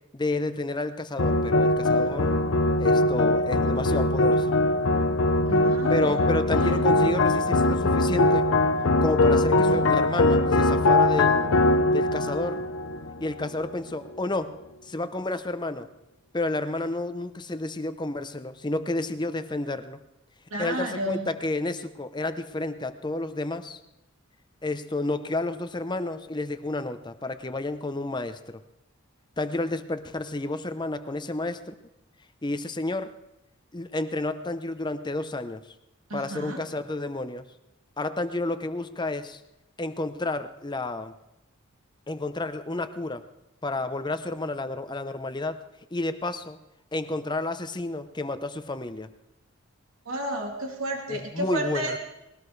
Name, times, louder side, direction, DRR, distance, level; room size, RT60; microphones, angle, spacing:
voice 1, 0.1-2.4 2.8-4.5 5.9-8.5 9.0-11.5 11.9-12.6 13.2-14.6 14.8-15.9 16.3-20.0 20.6-23.8 24.6-28.6 29.4-31.7 32.4-33.2 33.7-35.6 36.1-37.4 38.0-39.4 39.8-41.1 42.1-43.2 43.6-45.6 45.9-46.6 46.9-49.1 51.1-52.0, left 2 dB, 20° left, 10 dB, 0.8 m, -30 dB
sound 1, 1.2-13.7, left 2 dB, 75° left, 0.9 m, -22 dB
voice 2, 5.5-6.2 6.5-7.4 9.3-9.9 20.5-21.3 36.1-36.6 50.1-51.9, right 1 dB, 80° right, 1 dB, 2.7 m, -32 dB
21.0 x 17.5 x 3.3 m, 0.93 s
head